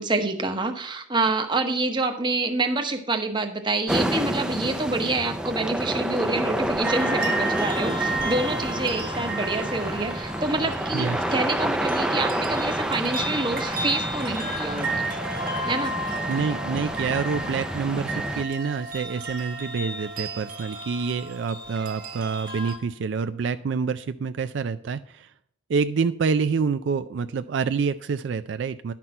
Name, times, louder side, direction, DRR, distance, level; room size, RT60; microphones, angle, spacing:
voice 1, 0.0-15.1 15.7-16.0, right 2 dB, 25° right, 6 dB, 0.9 m, -27 dB
sound 1, 3.9-18.4, right 1 dB, 5° right, 0.5 m, -29 dB
sound 2, 6.8-22.8, right 2 dB, 45° right, 1.3 m, -33 dB
voice 2, 16.3-25.3 25.7-28.9, right 5 dB, 70° right, 11 dB, 0.4 m, -27 dB
11.0 x 6.0 x 4.3 m, 0.72 s
head